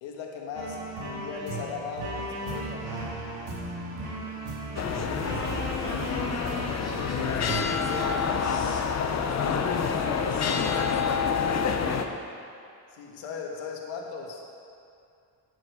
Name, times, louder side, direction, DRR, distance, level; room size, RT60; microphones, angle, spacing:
voice 1, 0.0-2.9 12.9-14.4, left 5 dB, 85° left, 0 dB, 1.6 m, -37 dB
sound 1, 0.5-7.6, right 1 dB, 75° right, 2.6 m, -35 dB
sound 2, 4.8-12.1, left 6 dB, 35° left, 0.7 m, -27 dB
voice 2, 6.0-9.0 9.4-10.8 11.4-12.2, left 1 dB, 10° left, -6 dB, 2.0 m, -40 dB
10.0 x 8.1 x 4.7 m, 2.5 s
cardioid pair, 130°, 44 cm